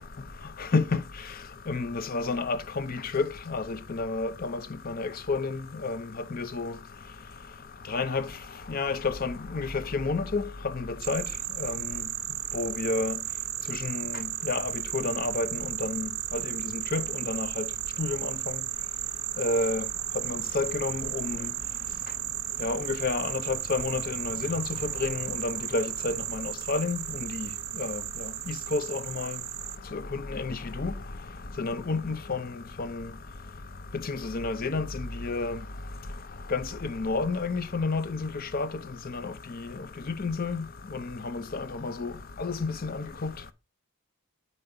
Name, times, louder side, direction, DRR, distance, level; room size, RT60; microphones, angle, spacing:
voice 1, 1.7-4.6 4.9-5.6 5.8-6.0 6.3-6.7 7.9-8.3 8.7-10.4 10.8-11.2 11.6-11.8 12.5-13.1 13.7-16.4 16.7-17.6 18.0-18.3 19.4-19.8 20.3-21.5 22.6-24.6 25.0-27.0 27.3-27.5 27.8-28.0 28.5-29.3 29.9-30.0 30.3-30.9 31.6-32.5 32.8-33.0 34.1-35.6 36.5-38.7 39.2-39.3 40.2-40.6 40.9-41.0 41.3-42.1 42.4-43.3, left 3 dB, 40° left, 0.6 m, -30 dB
sound 1, 11.0-29.8, right 17 dB, 60° right, 0.4 m, -34 dB
8.7 x 5.2 x 3.8 m
head